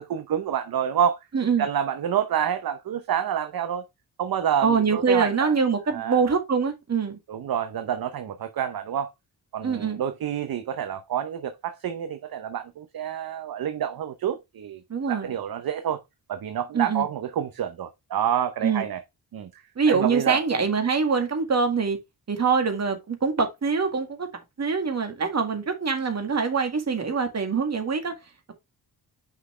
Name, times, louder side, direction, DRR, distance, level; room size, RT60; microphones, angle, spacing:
voice 1, 0.0-1.2 1.6-3.8 4.2-5.5 5.9-6.2 7.3-9.1 9.5-14.8 15.1-16.0 16.3-19.0 19.3-20.4, right 9 dB, 55° right, 0.7 m, -28 dB
voice 2, 1.3-1.7 4.6-7.2 9.6-10.0 14.9-15.3 16.7-17.1 18.6-18.8 19.8-22.0 22.3-24.3 24.6-28.1, right 5 dB, 35° right, 1.8 m, -24 dB
5.9 x 5.8 x 3.2 m
wide cardioid pair, 130°, 43 cm